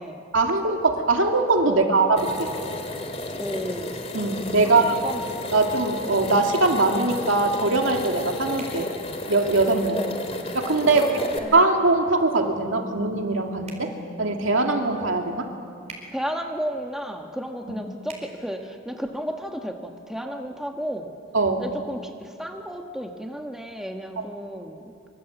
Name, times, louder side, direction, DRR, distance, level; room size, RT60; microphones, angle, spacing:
voice 1, 0.3-2.5 4.1-4.9 5.5-8.9 9.3-10.0 10.5-11.1 11.5-13.9 14.2-15.5 21.3-21.6 24.2-24.3, right 3 dB, 75° right, 3 dB, 2.5 m, -21 dB
voice 2, 1.6-2.0 3.4-3.9 4.6-5.2 9.9-10.2 10.8-11.6 16.1-21.1 21.6-24.9, equal, ahead, 3 dB, 1.3 m, -33 dB
sound 1, 2.2-11.4, left 2 dB, 30° left, 2.4 m, -33 dB
sound 2, 8.6-8.8 10.9-11.1 13.6-13.9 15.8-16.1 18.0-18.2, right 3 dB, 35° right, 4.4 m, -42 dB
25.5 x 25.0 x 8.0 m, 2.5 s
head